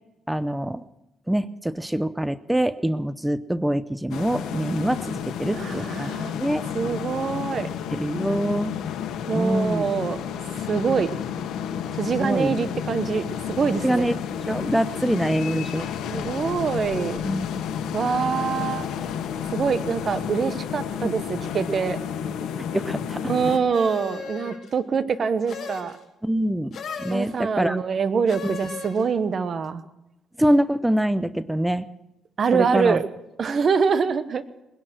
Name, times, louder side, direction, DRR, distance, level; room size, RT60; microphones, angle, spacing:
voice 1, 0.3-0.8 1.3-6.1 6.4-6.6 7.9-8.7 9.3-9.8 12.2-12.5 13.8-14.2 14.5-15.9 17.2-17.5 22.6-23.2 26.2-27.8 30.4-31.9 32.5-33.0, right 1 dB, 5° right, 15 dB, 0.6 m, -24 dB
sound 1, 4.1-23.6, left 8 dB, 85° left, 1.4 m, -31 dB
voice 2, 5.5-6.3 6.7-7.7 9.3-10.2 10.7-11.1 11.9-14.1 16.1-17.2 17.9-18.9 19.5-22.0 23.3-26.0 27.1-29.8 32.4-33.0 33.4-34.4, right 6 dB, 50° right, 13 dB, 1.1 m, -24 dB
sound 2, 23.7-24.7 25.5-26.0 26.7-27.3 28.3-29.0, left 6 dB, 55° left, 5.1 m, -36 dB
20.5 x 11.0 x 6.2 m, 0.94 s
cardioid pair, 90°, 0 cm